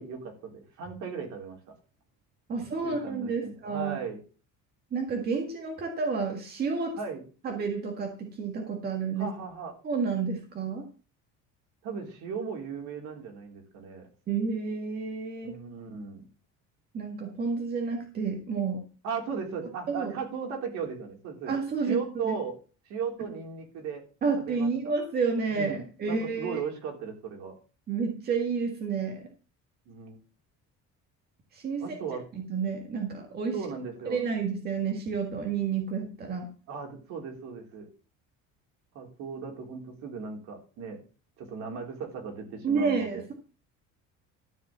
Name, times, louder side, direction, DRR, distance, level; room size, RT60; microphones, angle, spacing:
voice 1, 0.0-1.6 2.8-4.2 7.0-7.2 9.2-9.8 11.8-14.1 15.4-16.2 19.0-21.5 21.8-22.6 22.9-24.0 24.4-24.9 25.5-27.6 29.9-30.2 31.8-32.2 33.5-34.2 36.7-37.9 38.9-41.0 41.4-43.2, right 5 dB, 60° right, 2 dB, 3.8 m, -37 dB
voice 2, 2.5-4.0 4.9-7.0 7.4-9.3 9.8-10.8 14.3-15.6 16.9-18.8 19.9-20.1 21.5-22.3 24.2-26.6 27.9-29.3 31.5-31.9 32.3-33.5 34.0-36.5 42.6-43.3, right 5 dB, 30° right, 2 dB, 1.7 m, -30 dB
13.0 x 5.2 x 7.4 m, 0.37 s
cardioid pair, 180°, 31 cm